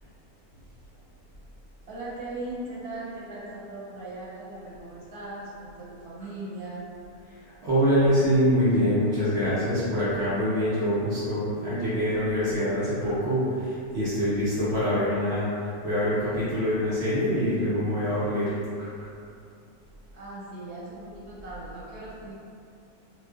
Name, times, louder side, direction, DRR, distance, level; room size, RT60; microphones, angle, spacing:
voice 1, 1.9-6.9 20.1-22.3, right 2 dB, 90° right, -7 dB, 1.3 m, -39 dB
voice 2, 7.6-15.5 15.8-18.5 18.8-19.1, equal, 60° right, -11 dB, 0.7 m, -25 dB
2.4 x 2.3 x 2.2 m, 2.5 s
omnidirectional pair, 1.6 m